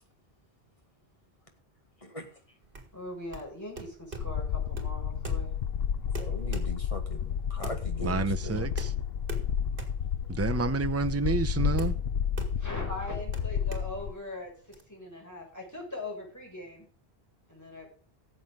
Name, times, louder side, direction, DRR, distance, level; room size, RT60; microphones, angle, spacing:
sound 1, 2.6-14.8, right 3 dB, 55° right, 2.4 m, -44 dB
voice 1, 2.9-5.5 12.6-14.5 14.9-16.9 17.5-17.9, left 2 dB, 15° left, 6.4 m, -40 dB
sound 2, 4.2-14.1, left 8 dB, 70° left, 1.0 m, -31 dB
voice 2, 6.2-8.7, left 1 dB, 30° left, 2.4 m, -40 dB
voice 3, 8.0-8.9 10.3-11.9, right 3 dB, 15° right, 0.7 m, -29 dB
17.5 x 7.9 x 3.8 m
omnidirectional pair, 1.1 m